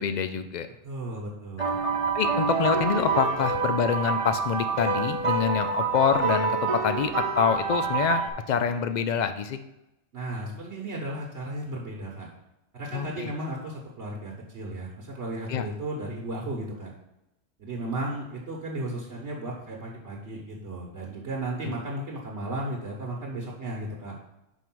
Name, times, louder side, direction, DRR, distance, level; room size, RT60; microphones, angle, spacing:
voice 1, 0.0-0.7 2.1-9.6 12.9-13.3 15.5-15.6 21.6-21.7, left 7 dB, 75° left, 10 dB, 0.4 m, -26 dB
voice 2, 0.8-1.8 10.1-12.3 12.7-16.9 17.6-24.2, right 1 dB, 65° right, -2 dB, 1.4 m, -35 dB
sound 1, 1.6-8.3, right 4 dB, 30° right, 0.9 m, -27 dB
5.4 x 4.7 x 6.0 m, 0.91 s
omnidirectional pair, 1.3 m